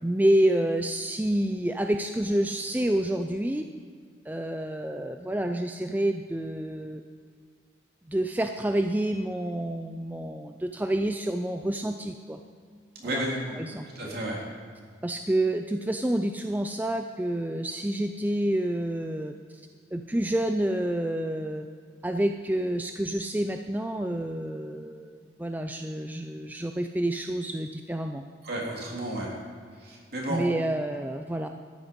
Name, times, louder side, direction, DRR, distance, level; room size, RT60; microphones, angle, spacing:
voice 1, 0.0-3.6 4.3-7.0 8.1-12.4 13.0-13.2 13.5-14.2 15.0-19.6 19.9-21.7 22.0-28.2 30.3-31.5, right 1 dB, 10° right, 5 dB, 0.4 m, -28 dB
voice 2, 13.0-13.6 13.9-14.4 28.4-29.3 29.8-30.4, right 1 dB, 50° right, -3 dB, 3.3 m, -32 dB
13.5 x 10.0 x 5.3 m, 2.1 s
head